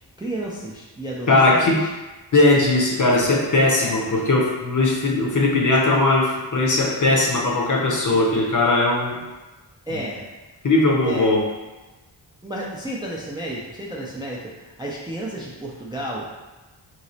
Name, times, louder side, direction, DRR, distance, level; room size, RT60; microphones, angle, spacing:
voice 1, 0.2-1.9 3.0-3.2 3.7-4.1 9.9-10.3 11.0-11.3 12.4-16.3, right 1 dB, 10° right, -4 dB, 0.3 m, -32 dB
voice 2, 1.3-1.8 2.3-9.2 9.9-10.0 10.6-11.4, left 2 dB, 40° left, -2 dB, 0.7 m, -19 dB
3.1 x 2.8 x 2.7 m, 1.1 s
wide cardioid pair, 110°, 46 cm